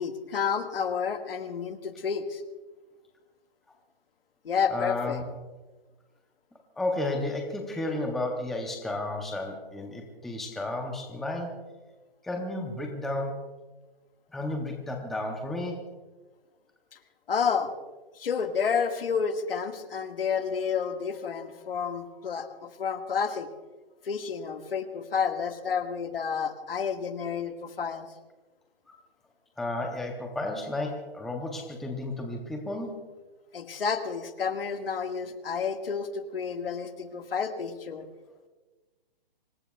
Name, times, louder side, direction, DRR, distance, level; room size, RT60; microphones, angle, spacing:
voice 1, 0.0-2.4 4.4-5.2 17.3-17.7 18.2-23.5 24.1-28.1 33.5-38.1, left 6 dB, 70° left, 6 dB, 1.8 m, -30 dB
voice 2, 4.7-5.2 6.8-11.6 12.2-13.4 14.3-15.9 29.6-33.0, left 2 dB, ahead, 2 dB, 0.7 m, -32 dB
25.5 x 20.0 x 2.3 m, 1.3 s
hypercardioid pair, 155°, 30 cm